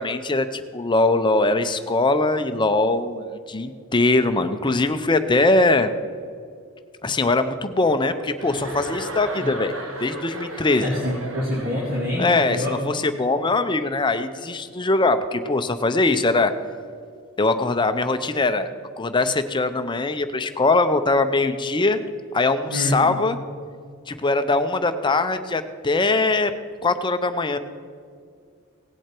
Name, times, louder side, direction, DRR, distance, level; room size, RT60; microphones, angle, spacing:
voice 1, 0.0-5.9 7.0-9.7 10.0-10.9 12.2-16.5 17.4-18.7 19.0-22.0 22.3-23.4 24.1-26.5 26.8-27.6, left 2 dB, 20° left, 10 dB, 0.6 m, -21 dB
Chuckle chortle, 8.4-12.1, right 1 dB, 75° right, 1.6 m, -34 dB
voice 2, 10.8-13.0 22.7-23.1, left 1 dB, 45° right, -5 dB, 2.2 m, -26 dB
17.5 x 7.9 x 4.5 m, 2.2 s
head